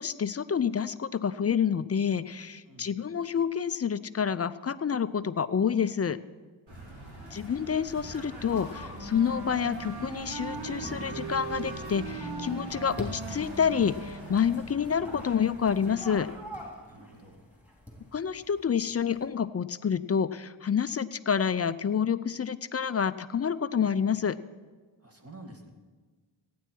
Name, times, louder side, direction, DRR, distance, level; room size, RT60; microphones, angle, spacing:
voice 1, 0.0-6.2 7.3-16.3 18.1-24.4, left 7 dB, 35° left, 14 dB, 0.4 m, -28 dB
voice 2, 6.7-7.4 16.8-17.5 25.0-25.7, right 2 dB, 30° right, 2 dB, 1.7 m, -50 dB
sound 1, 6.7-16.2, right 1 dB, 75° right, 4.8 m, -43 dB
sound 2, 7.2-19.3, equal, 5° right, 3.2 m, -47 dB
Wind instrument woodwind instrument, 8.9-14.5, right 4 dB, 50° right, 1.0 m, -40 dB
16.0 x 9.3 x 4.5 m, 1.4 s
cardioid pair, 70°, 47 cm